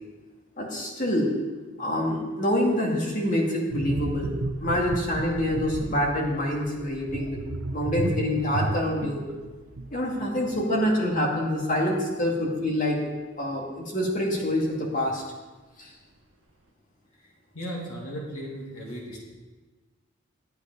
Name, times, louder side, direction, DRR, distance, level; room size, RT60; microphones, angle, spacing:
voice 1, 0.6-1.3 1.8-7.4 7.7-9.2 9.9-13.0 13.4-15.2 15.8-15.9, left 1 dB, 35° left, -1 dB, 2.2 m, -26 dB
sound 1, 3.7-11.1 11.4-11.6, right 2 dB, 60° right, 0.7 m, -34 dB
voice 2, 17.5-19.2, equal, 80° left, -3 dB, 2.4 m, -36 dB
12.0 x 8.4 x 5.3 m, 1.3 s
head